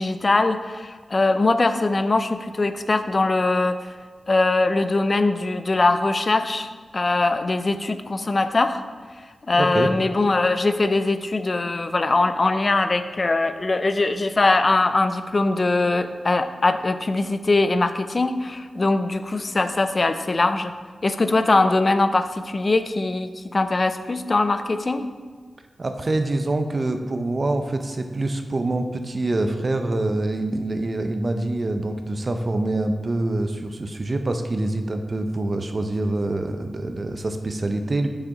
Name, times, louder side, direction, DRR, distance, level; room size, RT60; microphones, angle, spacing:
voice 1, 0.0-3.8 4.3-8.8 9.5-20.7 21.0-25.1, left 2 dB, 35° left, 10 dB, 0.4 m, -21 dB
voice 2, 9.5-9.9 25.8-38.1, right 2 dB, 35° right, 7 dB, 0.5 m, -25 dB
6.6 x 5.9 x 4.0 m, 1.5 s
wide cardioid pair, 130°, 0 cm